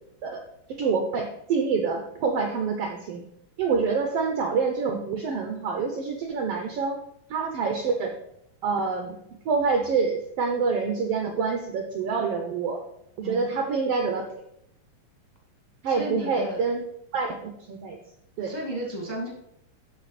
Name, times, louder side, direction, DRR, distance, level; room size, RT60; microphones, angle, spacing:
voice 1, 0.7-3.2 3.6-7.0 7.3-8.2 8.6-9.2 9.4-12.8 13.2-14.2 15.8-16.8 17.1-18.0 18.4-18.5, right 5 dB, 85° right, 4 dB, 1.3 m, -26 dB
voice 2, 15.8-16.6 18.4-19.3, right 1 dB, 10° left, -1 dB, 1.5 m, -33 dB
12.0 x 5.1 x 4.2 m, 0.77 s
omnidirectional pair, 3.8 m